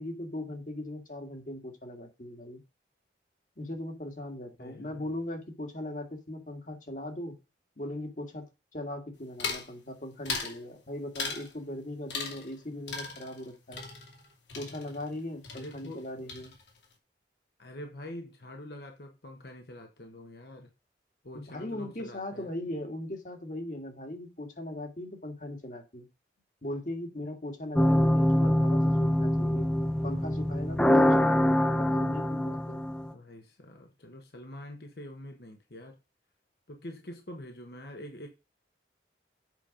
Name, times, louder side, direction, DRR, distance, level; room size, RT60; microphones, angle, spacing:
voice 1, 0.0-2.6 3.6-7.4 7.8-8.5 8.7-13.8 14.5-16.5 21.3-26.1 26.6-29.7 30.0-32.8, left 1 dB, 45° left, 2.0 m, -39 dB
voice 2, 4.6-5.1 15.5-16.0 17.6-20.7 21.2-22.5 33.1-36.0 36.7-38.3, left 1 dB, 60° left, 1.3 m, -45 dB
sound 1, 9.4-9.7 10.3-10.6 11.2-11.5 12.1-12.6 12.9-15.2 15.4-16.0 16.3-16.8, left 4 dB, 80° left, 2.6 m, -37 dB
sound 2, 27.8-33.1, left 1 dB, 5° left, 0.5 m, -24 dB
8.3 x 5.4 x 5.1 m
head